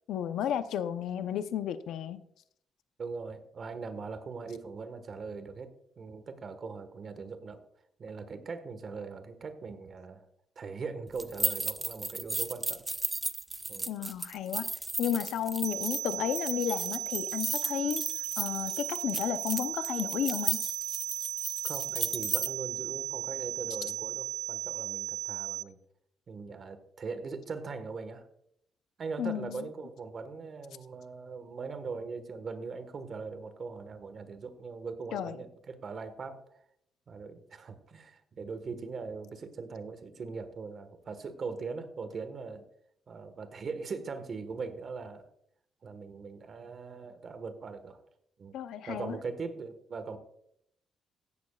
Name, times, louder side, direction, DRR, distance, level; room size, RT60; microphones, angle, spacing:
voice 1, 0.1-2.2 13.9-14.7 15.0-18.1 18.4-20.6 29.2-29.6 35.1-35.4 48.5-49.2, left 9 dB, 85° left, 11 dB, 0.7 m, -33 dB
voice 2, 3.0-7.6 8.0-10.2 10.5-12.8 13.7-13.9 21.6-25.8 26.3-28.2 29.0-36.4 37.1-42.6 43.1-45.2 45.8-48.0 48.4-48.6 48.9-50.2, right 4 dB, 45° right, 10 dB, 1.4 m, -40 dB
sound 1, 11.2-22.5, right 2 dB, 15° right, 0.5 m, -34 dB
sound 2, 15.6-25.6, right 10 dB, 65° right, 0.4 m, -36 dB
16.0 x 11.5 x 2.4 m, 0.72 s
cardioid pair, 120°, 0 cm